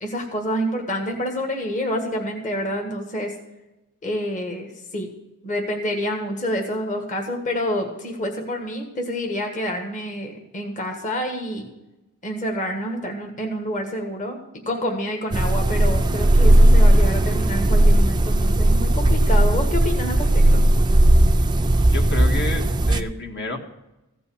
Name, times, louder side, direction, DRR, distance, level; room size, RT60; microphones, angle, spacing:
voice 1, 0.0-3.3 4.0-5.1 5.4-11.7 12.2-14.4 14.6-20.6, equal, 35° left, 2 dB, 1.6 m, -28 dB
sound 1, 15.3-23.0, right 1 dB, 20° right, 0.5 m, -16 dB
voice 2, 21.9-23.6, left 2 dB, 50° left, 2 dB, 1.7 m, -29 dB
15.5 x 5.4 x 8.6 m, 0.95 s
head